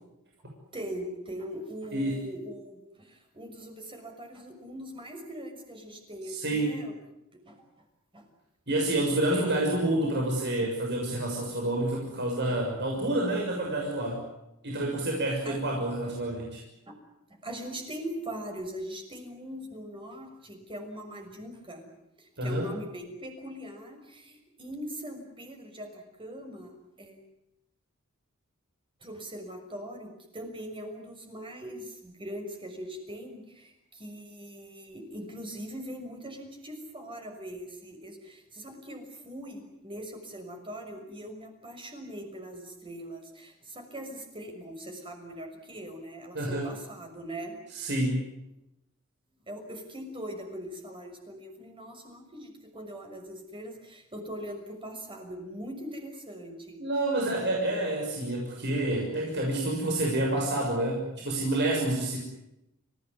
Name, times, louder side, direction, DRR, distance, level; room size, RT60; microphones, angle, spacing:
voice 1, 0.7-6.9 7.4-7.6 8.1-8.3 9.3-9.7 10.1-10.2 10.6-10.7 12.5-12.6 15.4-15.6 16.0-16.1 16.9-17.0 17.3-21.9 22.2-27.2 29.0-47.5 49.5-56.8, equal, 25° right, 4 dB, 6.2 m, -41 dB
voice 2, 1.9-2.2 6.3-6.9 8.7-14.2 14.6-16.6 22.4-22.7 46.3-46.7 47.7-48.2 56.8-62.2, right 1 dB, 55° right, -1 dB, 6.7 m, -28 dB
30.0 x 16.5 x 9.8 m, 0.87 s
head